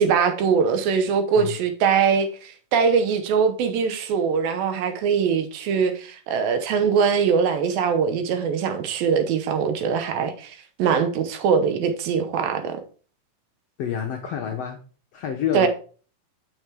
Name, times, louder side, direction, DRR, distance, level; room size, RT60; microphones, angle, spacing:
voice 1, 0.0-12.8 15.5-15.7, right 6 dB, 80° right, 2.7 m, -22 dB
voice 2, 13.8-14.8 15.1-15.7, left 8 dB, 80° left, 1.4 m, -28 dB
6.6 x 6.5 x 4.7 m
omnidirectional pair, 4.2 m